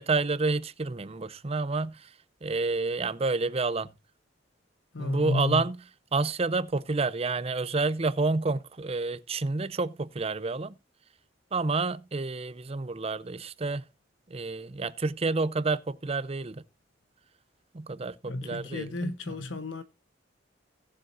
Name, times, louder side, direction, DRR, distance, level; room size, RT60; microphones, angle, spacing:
voice 1, 0.0-2.1 2.4-3.9 5.0-5.8 6.1-10.7 11.5-13.8 14.3-16.6 17.7-19.4, right 3 dB, 35° right, 0.6 m, -29 dB
voice 2, 4.9-5.6 18.3-19.8, left 2 dB, 85° left, 1.0 m, -32 dB
18.0 x 7.6 x 2.6 m
head